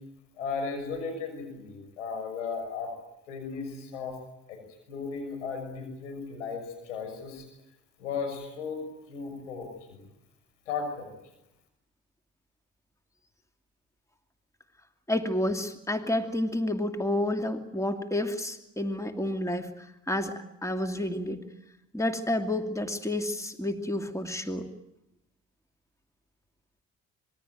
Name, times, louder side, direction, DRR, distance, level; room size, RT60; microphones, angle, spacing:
voice 1, 0.4-2.9 3.3-4.2 4.5-4.6 4.9-7.4 8.0-8.8 9.1-10.0 10.7-11.1, left 5 dB, 90° left, 5 dB, 6.5 m, -35 dB
voice 2, 15.1-21.4 21.9-24.7, left 1 dB, 10° left, 6 dB, 2.6 m, -30 dB
26.0 x 21.0 x 9.2 m, 0.90 s
hypercardioid pair, 50°, 36 cm